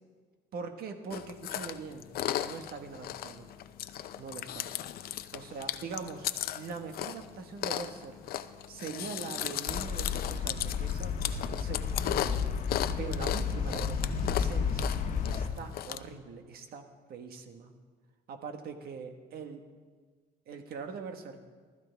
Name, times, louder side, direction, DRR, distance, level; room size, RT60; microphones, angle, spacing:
voice 1, 0.5-2.1 2.4-3.5 4.2-4.7 5.3-6.3 6.5-8.2 8.7-12.5 13.0-14.9 15.2-17.7 18.3-19.6 20.5-21.4, right 5 dB, 65° right, 6 dB, 1.5 m, -42 dB
Chewing mastication, 1.1-16.0, left 11 dB, 65° left, 0.6 m, -37 dB
sound 1, 9.7-15.5, left 6 dB, 45° left, 1.3 m, -32 dB
19.5 x 13.0 x 3.5 m, 1.5 s
cardioid pair, 110°, 17 cm